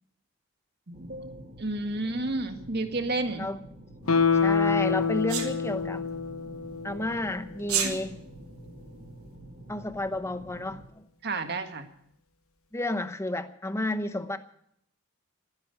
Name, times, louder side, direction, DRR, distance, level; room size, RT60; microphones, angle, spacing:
sound 1, 0.9-10.9, right 1 dB, 30° right, 1.6 m, -48 dB
voice 1, 0.9-3.5 11.2-11.9, right 2 dB, 45° right, 7 dB, 1.8 m, -31 dB
Guitar, 4.1-7.3 7.7-7.8, left 5 dB, 75° left, 1.3 m, -26 dB
voice 2, 4.3-6.1 6.8-8.1 9.7-11.1 12.7-14.4, left 1 dB, 10° left, 10 dB, 0.9 m, -31 dB
Sneeze, 5.3-5.5 7.6-7.9, right 8 dB, 80° right, 3.5 m, -27 dB
15.0 x 9.9 x 9.5 m, 0.72 s
head